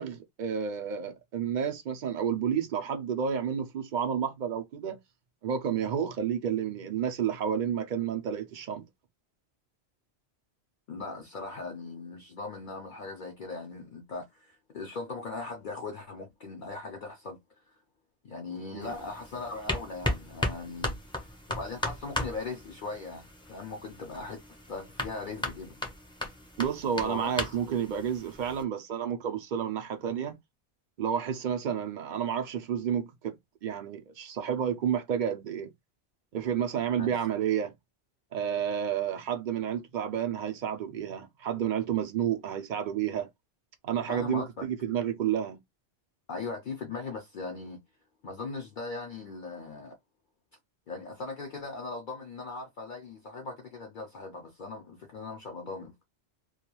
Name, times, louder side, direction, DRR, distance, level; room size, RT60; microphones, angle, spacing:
voice 1, 0.0-5.0 5.4-8.9 18.7-18.9 26.6-30.4 31.0-33.4 33.6-35.7 36.3-37.7 38.3-43.3 43.8-45.6, right 8 dB, 60° right, 0.5 m, -30 dB
voice 2, 10.9-17.4 17.7-17.8 18.2-24.4 24.7-25.8 27.0-27.5 37.0-37.2 44.1-44.6 46.3-47.8 48.2-50.0 50.9-55.9, left 3 dB, 55° left, 0.6 m, -39 dB
sound 1, 18.8-28.6, left 1 dB, 5° left, 0.5 m, -37 dB
2.3 x 2.2 x 2.9 m
omnidirectional pair, 1.2 m